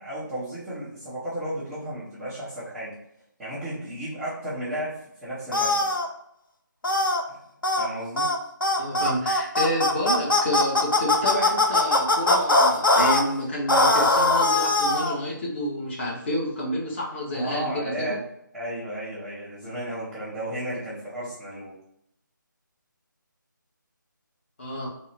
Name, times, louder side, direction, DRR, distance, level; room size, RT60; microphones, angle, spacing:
voice 1, 0.0-2.9 3.4-5.9 7.3-7.4 7.7-8.3 17.3-18.2 18.5-21.7, right 1 dB, ahead, -18 dB, 0.3 m, -33 dB
sound 1, 5.5-6.1 6.8-7.2 7.6-7.9 8.2-8.4 8.6-13.2 13.7-15.2, left 2 dB, 85° left, 0.7 m, -21 dB
voice 2, 8.8-18.0 24.6-24.9, left 1 dB, 35° left, -4 dB, 1.1 m, -29 dB
3.7 x 2.1 x 4.1 m, 0.75 s
figure-of-eight pair, 165°, 11 cm